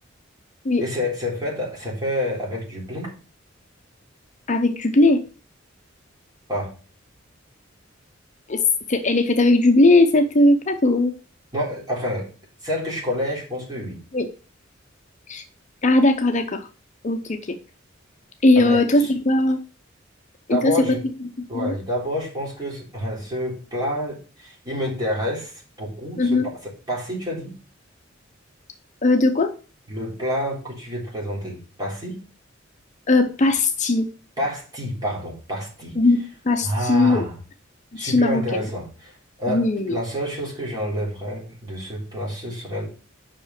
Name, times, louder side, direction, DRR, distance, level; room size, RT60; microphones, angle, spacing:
voice 1, 0.8-3.1 6.5-6.7 11.5-12.3 12.6-14.0 18.6-19.1 20.5-21.0 21.5-25.5 25.8-27.6 29.9-32.2 34.4-36.0 36.6-37.4 38.0-39.1 39.4-42.9, equal, 20° right, -4 dB, 3.9 m, -28 dB
voice 2, 4.5-5.2 8.5-8.6 8.9-11.1 14.1-14.3 15.3-15.4 15.8-16.7 17.0-17.6 18.4-19.6 20.5-20.7 21.5-21.7 26.2-26.5 29.0-29.5 33.1-34.1 36.0-36.2 36.5-37.2 37.9-38.7 39.5-40.0, left 2 dB, 40° left, 6 dB, 0.7 m, -18 dB
5.8 x 5.2 x 5.8 m, 0.36 s
head